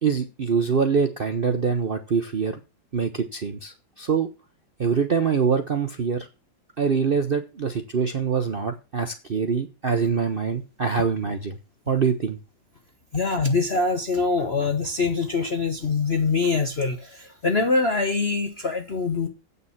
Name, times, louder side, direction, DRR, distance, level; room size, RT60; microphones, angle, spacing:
voice 1, 0.0-2.6 2.9-4.3 4.8-6.3 6.8-11.6 11.9-12.4, right 6 dB, 50° right, 0.7 m, -24 dB
voice 2, 13.1-19.3, left 4 dB, 40° left, 1.2 m, -24 dB
8.5 x 6.9 x 7.2 m
omnidirectional pair, 2.0 m